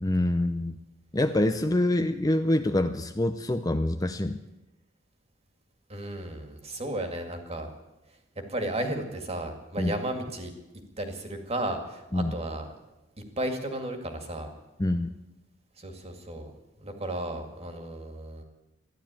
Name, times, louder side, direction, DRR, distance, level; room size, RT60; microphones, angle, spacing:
voice 1, 0.0-0.8 1.1-4.4 9.8-9.9 12.1-12.3 14.8-15.1, left 1 dB, 20° left, 8 dB, 0.6 m, -26 dB
voice 2, 5.9-7.7 8.5-10.5 11.0-12.7 13.4-14.5 15.8-16.5 16.8-18.4, right 1 dB, 35° right, 5 dB, 2.1 m, -34 dB
13.5 x 11.0 x 8.9 m, 1.0 s
head